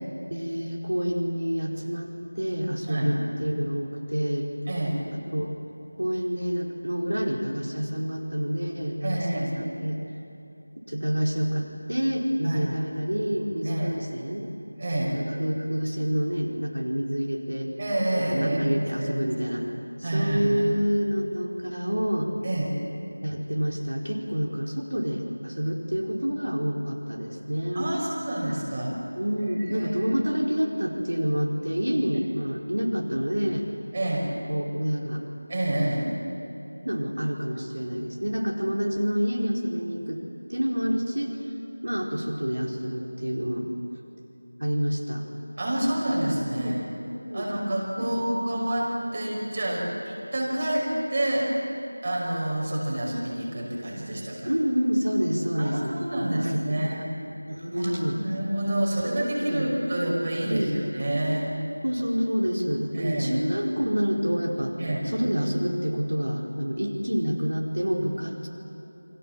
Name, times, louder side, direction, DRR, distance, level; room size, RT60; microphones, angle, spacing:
voice 1, 0.3-4.5 5.3-5.5 6.0-10.0 10.7-14.4 15.1-17.7 18.3-19.6 20.0-22.3 23.2-27.9 29.2-33.6 34.5-35.2 36.8-40.2 40.5-41.3 41.8-43.7 44.6-45.2 46.5-47.5 48.0-48.5 54.4-55.9 56.2-57.0 57.5-58.2 59.4-59.7 60.4-60.8 61.8-64.7 65.0-68.5, equal, 80° right, -2 dB, 4.7 m, -28 dB
voice 2, 4.7-5.0 9.0-9.5 12.4-12.6 13.7-14.0 14.8-15.2 17.8-19.3 20.0-20.5 22.4-22.7 27.7-28.9 29.7-30.1 33.9-34.3 35.5-36.1 45.6-46.9 47.3-51.5 52.0-54.5 55.6-57.0 57.8-61.5 62.9-63.4 64.8-65.0, right 1 dB, 25° right, -3 dB, 5.5 m, -28 dB
29.5 x 24.0 x 7.7 m, 3.0 s
figure-of-eight pair, 175°, 0 cm